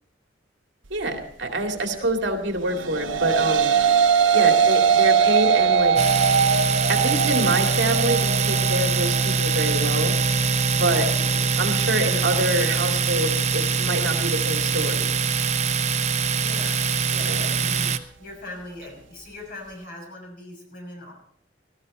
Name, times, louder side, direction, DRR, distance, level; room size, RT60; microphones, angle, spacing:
voice 1, 0.9-3.8 4.3-6.0 6.9-10.2 10.7-11.1 11.6-15.2 17.3-17.4, right 1 dB, 65° right, 4 dB, 2.4 m, -26 dB
voice 2, 1.9-2.3 11.0-11.4 16.4-17.9 18.2-21.1, left 2 dB, 50° left, 0 dB, 6.2 m, -40 dB
sound 1, 2.7-11.9, right 6 dB, 85° right, 0.7 m, -21 dB
Domestic sounds home sounds, 6.0-18.0, right 5 dB, 35° right, 0.8 m, -23 dB
18.5 x 14.0 x 4.3 m, 0.68 s
head